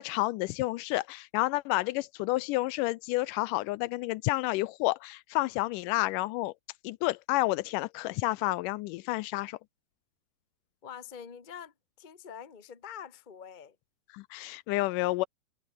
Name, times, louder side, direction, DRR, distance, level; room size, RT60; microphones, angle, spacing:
voice 1, 0.0-6.5 6.8-9.6 14.1-15.3, left 19 dB, 80° left, 2.1 m, -30 dB
voice 2, 10.8-13.7, left 8 dB, 25° left, 0.9 m, -45 dB
omnidirectional pair, 3.8 m